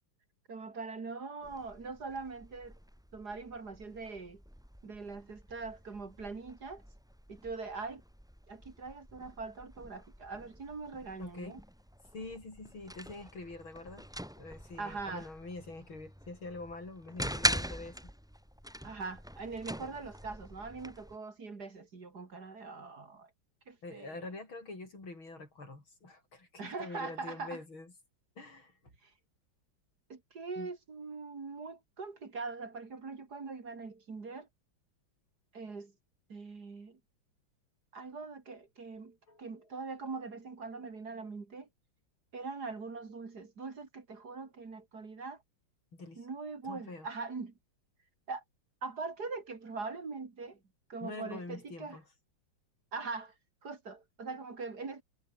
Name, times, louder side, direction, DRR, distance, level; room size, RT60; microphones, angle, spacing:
voice 1, 0.5-2.8 3.1-4.4 4.8-6.8 7.3-8.0 8.5-11.6 14.8-15.3 18.8-23.3 23.7-24.2 26.6-27.6 29.0-29.1 30.1-34.5 35.5-35.9 36.3-37.0 37.9-41.7 42.3-45.4 46.2-47.5 48.3-48.4 48.8-50.6 50.9-52.0 52.9-53.3 53.6-55.0, right 4 dB, 50° right, 3.1 m, -42 dB
sound 1, 1.4-21.2, equal, ahead, 4.1 m, -42 dB
voice 2, 11.2-11.6 12.1-14.1 14.4-18.1 23.8-27.9 28.4-28.7 30.6-30.7 39.3-39.5 45.9-46.3 46.7-47.1 51.0-52.0, left 2 dB, 70° left, 7.5 m, -45 dB
omnidirectional pair, 2.3 m